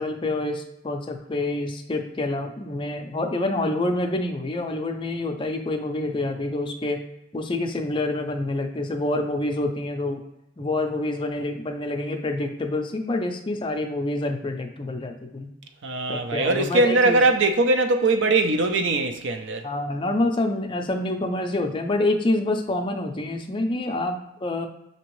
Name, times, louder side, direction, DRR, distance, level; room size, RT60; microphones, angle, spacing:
voice 1, 0.0-7.0 7.3-10.2 10.6-15.5 16.1-17.2 19.6-24.7, left 2 dB, 25° left, 0.5 m, -27 dB
voice 2, 15.8-19.7, right 2 dB, 65° right, 0.5 m, -21 dB
6.0 x 2.8 x 3.1 m
head